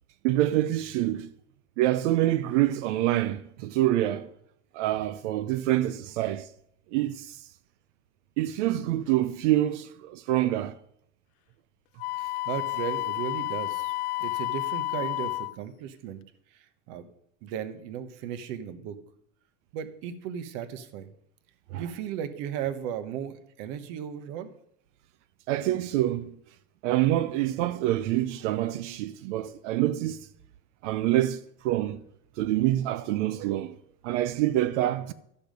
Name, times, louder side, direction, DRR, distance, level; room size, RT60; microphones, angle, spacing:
voice 1, 0.2-1.3 1.8-4.3 4.7-6.5 6.9-7.4 8.4-10.8 21.7-21.8 25.5-26.3 26.8-30.3 30.8-32.0 32.4-33.7 34.0-35.1, right 14 dB, 75° right, 0.7 m, -26 dB
Wind instrument woodwind instrument, 12.0-15.6, left 18 dB, 70° left, 0.5 m, -31 dB
voice 2, 12.2-13.9 14.2-16.2 16.5-17.1 17.4-18.9 19.7-21.1 21.7-24.5, right 9 dB, 55° right, 1.1 m, -36 dB
12.5 x 7.0 x 5.2 m
cardioid pair, 175°, 35 cm